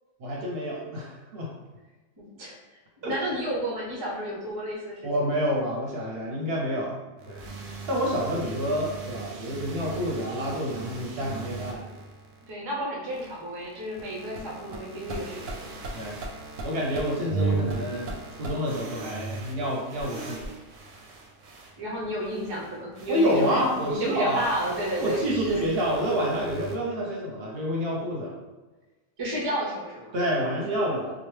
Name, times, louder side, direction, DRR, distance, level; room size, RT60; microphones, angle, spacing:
voice 1, 0.2-1.5 3.0-3.1 5.0-7.0 7.3-7.4 7.9-11.8 15.9-16.2 16.6-18.1 18.4-20.5 23.1-24.4 25.0-28.4 30.1-31.1, equal, 60° right, -3 dB, 0.8 m, -28 dB
voice 2, 2.2-5.1 12.4-15.7 21.8-25.6 29.2-30.1, right 1 dB, 30° right, -3 dB, 0.5 m, -32 dB
sound 1, 7.2-12.5 13.1-26.8, right 3 dB, 90° right, 0.9 m, -37 dB
2.9 x 2.2 x 3.1 m, 1.2 s
omnidirectional pair, 1.3 m